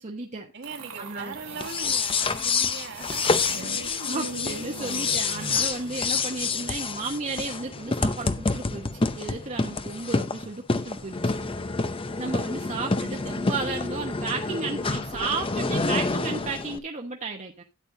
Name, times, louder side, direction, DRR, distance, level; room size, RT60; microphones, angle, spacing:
voice 1, 0.0-1.3 4.1-11.4 12.2-17.6, right 3 dB, 35° right, 1.1 m, -33 dB
voice 2, 0.5-3.8, right 4 dB, 55° right, 1.6 m, -41 dB
sound 1, 0.6-5.9, right 4 dB, 75° right, 2.0 m, -39 dB
sound 2, 1.5-16.8, left 4 dB, 25° left, 0.7 m, -28 dB
13.0 x 8.9 x 2.7 m
head